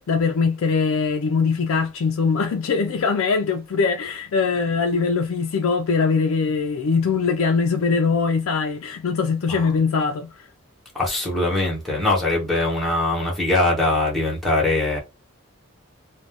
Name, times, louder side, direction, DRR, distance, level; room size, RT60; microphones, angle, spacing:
voice 1, 0.0-10.5, left 5 dB, 90° left, 0.4 m, -22 dB
voice 2, 10.9-15.0, left 2 dB, ahead, 0.9 m, -22 dB
2.5 x 2.2 x 3.3 m
head